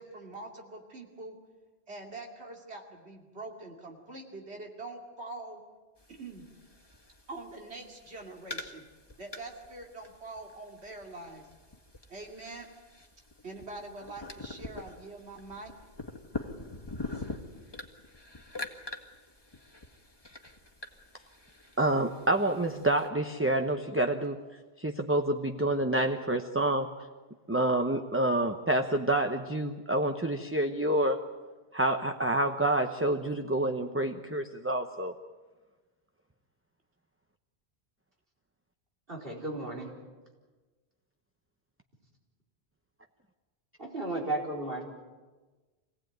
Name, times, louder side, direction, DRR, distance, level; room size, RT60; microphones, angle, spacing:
voice 1, 0.0-1.4 1.9-5.6 6.1-6.5 7.3-8.8 9.2-11.5 12.1-12.7 13.4-15.7, right 2 dB, 90° right, 1 dB, 2.9 m, -44 dB
sound 1, 6.0-23.1, left 2 dB, 25° left, 1.8 m, -45 dB
voice 2, 21.8-24.4 24.8-27.1 27.5-31.2 31.7-35.1, right 1 dB, 15° right, 5 dB, 0.9 m, -28 dB
voice 3, 39.1-39.9 43.8-44.8, right 2 dB, 60° right, -1 dB, 4.6 m, -34 dB
26.0 x 17.5 x 9.3 m, 1.3 s
omnidirectional pair, 1.1 m